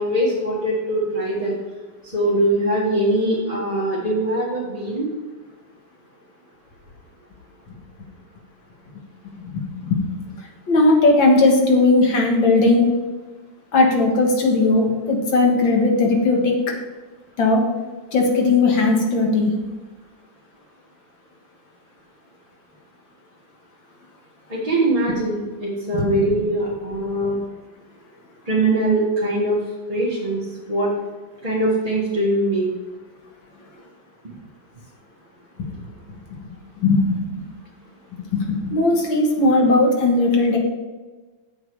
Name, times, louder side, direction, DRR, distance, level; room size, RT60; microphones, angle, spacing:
voice 1, 0.0-1.6 2.0-5.1 24.5-27.4 28.4-29.6 29.9-30.9 31.4-32.7, right 1 dB, 20° right, -7 dB, 1.7 m, -22 dB
voice 2, 9.2-10.0 10.7-12.9 13.7-16.5 17.4-17.6 18.1-19.5 25.9-26.2 36.3-36.4 36.8-37.2 38.3-40.6, left 2 dB, 90° left, 1 dB, 2.5 m, -17 dB
8.8 x 7.7 x 4.7 m, 1.3 s
omnidirectional pair, 2.0 m